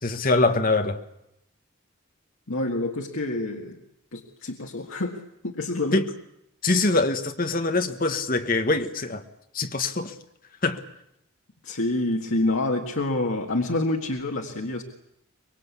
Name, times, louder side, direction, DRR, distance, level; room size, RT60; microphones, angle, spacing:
voice 1, 0.0-1.0 5.9-6.1 6.6-9.2 9.5-10.1 10.6-10.8, left 3 dB, 40° left, 1.4 m, -23 dB
voice 2, 2.5-3.8 4.1-6.0 11.6-14.8, left 2 dB, 75° left, 1.7 m, -27 dB
24.5 x 21.5 x 8.4 m
head